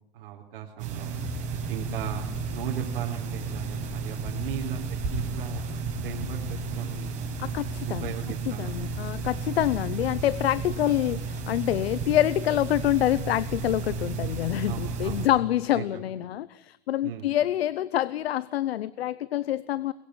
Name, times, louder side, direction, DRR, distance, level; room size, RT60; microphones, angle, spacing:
voice 1, 0.1-1.1 1.7-4.8 5.1-5.6 6.0-7.3 7.9-8.8 9.7-9.8 14.7-15.4 15.7-16.0 17.0-17.3, right 9 dB, 50° right, -3 dB, 4.2 m, -37 dB
sound 1, 0.8-15.3, right 4 dB, 25° right, 5.7 m, -33 dB
voice 2, 7.4-8.1 8.5-19.9, left 13 dB, 75° left, 17 dB, 1.0 m, -26 dB
23.0 x 22.0 x 10.0 m, 0.87 s
supercardioid pair, 165°, 31 cm